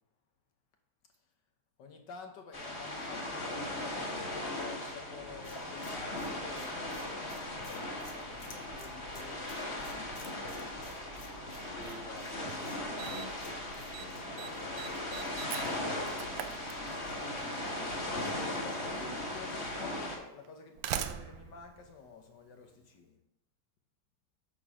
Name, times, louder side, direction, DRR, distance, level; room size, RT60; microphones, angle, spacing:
voice 1, 1.8-11.1 14.5-16.0 17.5-23.2, left 5 dB, 85° left, 4 dB, 1.7 m, -51 dB
sound 1, 2.5-20.2, left 1 dB, 40° left, 1.7 m, -38 dB
sound 2, 5.4-17.4, left 3 dB, 65° left, 1.6 m, -54 dB
voice 2, 11.8-14.8 18.0-19.6 19.9-20.1, right 1 dB, 40° right, 2 dB, 1.2 m, -50 dB
Slam, 12.2-12.3 13.0-13.5 13.7-14.1 14.4-17.3 18.4-18.5 19.4-19.5 20.4-22.8, right 10 dB, 85° right, 1.2 m, -41 dB
8.5 x 4.3 x 6.2 m, 0.86 s
omnidirectional pair, 1.9 m